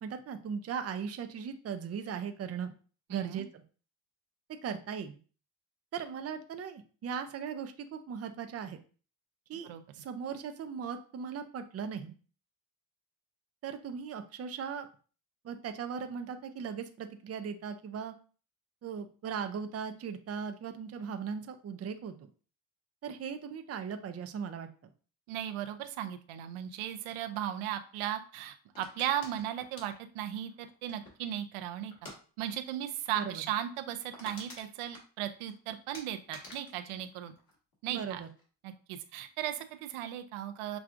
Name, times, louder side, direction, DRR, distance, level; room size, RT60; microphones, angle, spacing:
voice 1, 0.0-2.7 3.1-3.6 4.6-5.2 5.9-8.8 9.5-12.1 13.6-14.9 15.4-18.1 18.8-22.3 23.0-24.7 33.1-33.4 37.9-38.3, right 7 dB, 30° right, 7 dB, 0.5 m, -38 dB
voice 2, 3.1-3.4 9.7-9.8 25.3-31.9 32.4-37.3 37.8-38.2 38.6-40.8, right 11 dB, 90° right, 8 dB, 0.6 m, -36 dB
sound 1, 28.7-31.3 31.9-32.2 32.5-32.7 33.0-33.1 33.5-33.6 33.8-35.5 35.9-38.0 38.3-38.7, left 1 dB, 45° left, 1.7 m, -50 dB
6.0 x 2.4 x 2.4 m, 0.38 s
cardioid pair, 100°, 48 cm